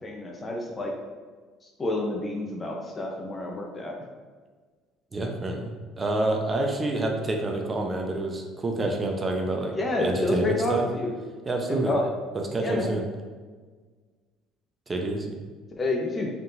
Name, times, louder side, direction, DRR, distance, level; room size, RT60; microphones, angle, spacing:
voice 1, 0.0-0.9 1.8-3.9 9.7-11.1 11.7-12.1 12.6-13.0 15.8-16.3, left 2 dB, 25° left, 0 dB, 0.8 m, -29 dB
voice 2, 5.1-10.9 11.5-12.0 12.3-13.0 14.9-15.4, right 2 dB, 30° right, 2 dB, 0.8 m, -28 dB
5.3 x 3.8 x 2.6 m, 1.5 s
supercardioid pair, 85°, 0 cm